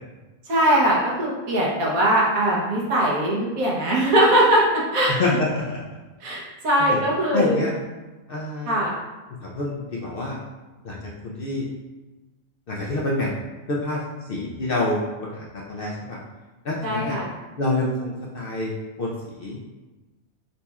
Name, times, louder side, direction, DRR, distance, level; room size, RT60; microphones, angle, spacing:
voice 1, 0.5-5.1 6.2-7.6 8.7-8.9 16.8-17.3, right 1 dB, 85° right, -3 dB, 1.4 m, -21 dB
voice 2, 5.1-5.8 6.9-7.0 7.3-7.7 8.3-8.8 9.4-10.4 10.8-11.0 11.2-11.7 12.7-13.3 13.7-14.0 14.3-16.2 16.6-17.2 17.6-18.7 19.0-19.1 19.4-19.6, left 2 dB, 60° left, -3 dB, 0.6 m, -26 dB
4.1 x 4.0 x 2.3 m, 1.2 s
omnidirectional pair, 1.4 m